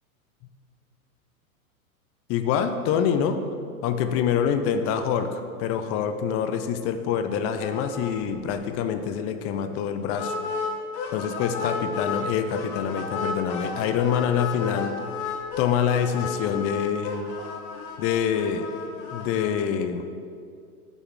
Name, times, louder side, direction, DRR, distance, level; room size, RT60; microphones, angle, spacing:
voice 1, 2.3-3.4 3.8-10.3 11.1-14.9 15.6-17.3 18.0-18.7 19.1-20.3, left 8 dB, 30° left, 8 dB, 0.7 m, -26 dB
sound 1, 7.6-8.1 8.4-8.5 8.9-9.0 10.1-12.2 12.5-19.5, left 5 dB, 50° left, 1.7 m, -33 dB
6.8 x 6.2 x 7.2 m, 2.3 s
hypercardioid pair, 110°, 45 cm